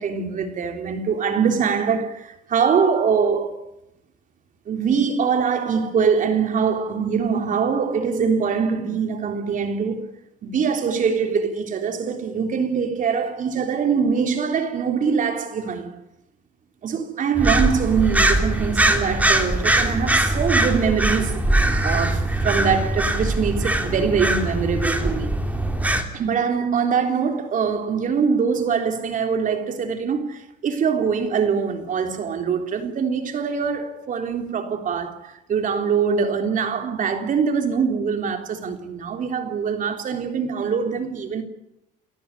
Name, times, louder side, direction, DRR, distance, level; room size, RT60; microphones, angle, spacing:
voice 1, 0.0-3.6 4.7-10.1 10.4-16.0 16.8-25.3 26.1-41.4, right 6 dB, 50° right, 3.7 m, -23 dB
sound 1, 17.4-26.0, right 1 dB, 10° right, 3.6 m, -21 dB
30.0 x 14.0 x 10.0 m
cardioid pair, 110°, 17 cm